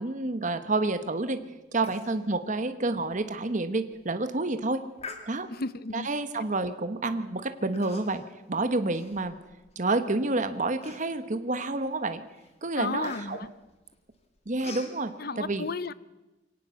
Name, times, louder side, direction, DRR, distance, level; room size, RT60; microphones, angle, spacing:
voice 1, 0.0-1.4 1.7-4.9 5.3-5.5 5.9-8.2 8.5-9.3 9.7-12.2 12.6-13.4 14.5-15.7, right 2 dB, 40° right, 9 dB, 1.2 m, -29 dB
Human voice, 1.8-2.2 2.5-2.6 3.1-3.2 3.8-4.0 5.0-5.7 6.5-6.7 7.7-8.3 8.7-9.7 10.2-10.3 10.8-11.4 11.9-12.1 12.4-15.0, left 4 dB, 35° left, 2.8 m, -45 dB
voice 2, 5.5-6.1 12.8-13.5 15.2-15.9, left 3 dB, 55° left, 16 dB, 0.8 m, -33 dB
24.0 x 18.5 x 7.0 m, 1.1 s
head